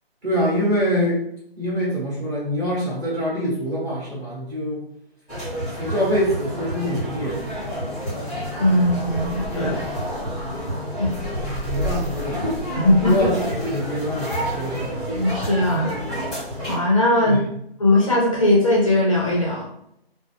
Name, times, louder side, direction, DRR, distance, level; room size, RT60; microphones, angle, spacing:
voice 1, 0.2-1.2 1.6-4.8 5.8-7.4 9.6-9.8 11.3-12.6 13.1-14.9 17.2-17.4, equal, 20° right, -10 dB, 1.0 m, -25 dB
sound 1, 5.3-16.7, equal, ahead, 0.9 m, -29 dB
voice 2, 8.6-9.8 11.0-11.1 12.8-13.2 15.1-15.9 16.7-17.5 17.8-19.6, left 1 dB, 35° left, -4 dB, 0.5 m, -19 dB
2.2 x 2.0 x 3.3 m, 0.74 s
figure-of-eight pair, 155°, 31 cm